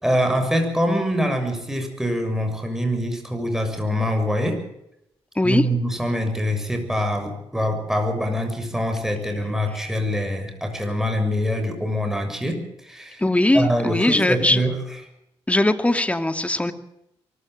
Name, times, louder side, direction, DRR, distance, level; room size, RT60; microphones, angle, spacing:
voice 1, 0.0-4.6 5.4-13.2 13.5-14.8, equal, 5° right, 5 dB, 6.7 m, -24 dB
voice 2, 13.2-14.6 15.5-16.7, left 1 dB, 15° left, 9 dB, 2.4 m, -20 dB
23.5 x 14.5 x 7.7 m, 0.82 s
cardioid pair, 60°, 10 cm